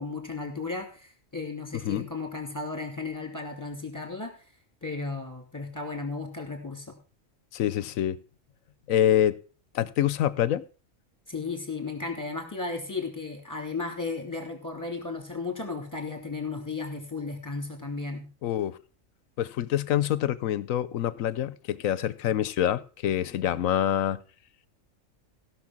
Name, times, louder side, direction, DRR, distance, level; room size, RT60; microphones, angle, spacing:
voice 1, 0.0-4.4 4.8-7.0 11.3-18.3, left 3 dB, 15° left, 4 dB, 3.0 m, -35 dB
voice 2, 7.5-8.2 8.9-9.4 9.7-10.6 18.4-18.8 19.4-24.2, left 11 dB, 85° left, 18 dB, 1.2 m, -26 dB
16.0 x 6.4 x 6.1 m, 0.36 s
omnidirectional pair, 1.3 m